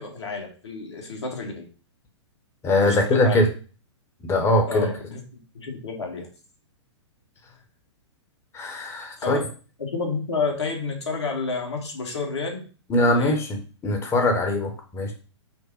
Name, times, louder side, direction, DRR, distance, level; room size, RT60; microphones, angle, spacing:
voice 1, 0.0-1.7 2.7-3.4 4.7-5.2 5.5-6.3 9.2-9.3 9.8-12.6 13.0-13.3, left 4 dB, 65° left, 1 dB, 1.4 m, -30 dB
voice 2, 2.6-3.5 4.2-4.9 8.5-9.4 12.9-15.1, left 1 dB, 15° left, 4 dB, 0.8 m, -22 dB
5.2 x 2.1 x 4.5 m, 0.37 s
figure-of-eight pair, 110°, 15 cm